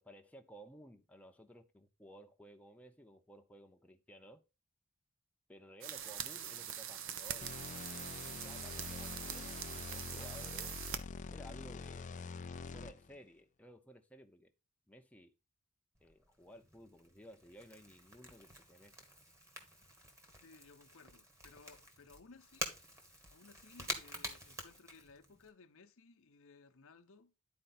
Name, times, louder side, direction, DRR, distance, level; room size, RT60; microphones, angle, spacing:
voice 1, 0.0-4.4 5.5-7.5 8.2-10.8 11.3-12.3 12.7-14.5 14.9-15.4 16.0-18.9, equal, 5° left, 0.8 m, -56 dB
sound 1, 5.8-11.0, right 9 dB, 60° right, 0.7 m, -43 dB
sound 2, 7.4-13.2, left 4 dB, 35° left, 0.4 m, -46 dB
Crackle / Crack, 15.9-25.5, equal, 15° right, 1.4 m, -48 dB
voice 2, 20.4-22.7 23.3-27.3, left 4 dB, 65° left, 0.8 m, -60 dB
10.0 x 4.4 x 4.2 m
head